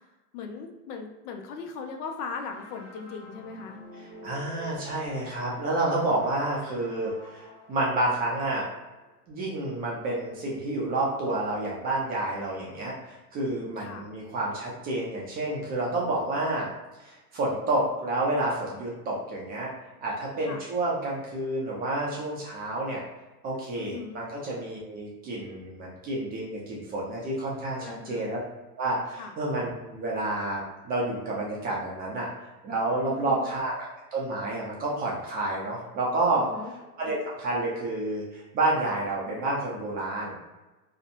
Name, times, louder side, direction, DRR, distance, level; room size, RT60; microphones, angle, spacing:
voice 1, 0.3-3.8 13.8-14.1 20.4-20.6 23.8-24.3 27.8-28.2 29.1-29.3 33.0-33.5 36.4-36.7, left 5 dB, 80° left, 4 dB, 0.6 m, -39 dB
sound 1, 2.5-9.3, left 2 dB, 55° left, 0.9 m, -48 dB
voice 2, 4.0-8.7 9.3-16.7 17.0-19.7 20.0-23.0 23.4-28.4 28.8-32.3 32.6-36.5 37.0-40.4, right 2 dB, 20° right, -4 dB, 0.3 m, -29 dB
2.6 x 2.1 x 2.5 m, 1.1 s
hypercardioid pair, 115°, 45 cm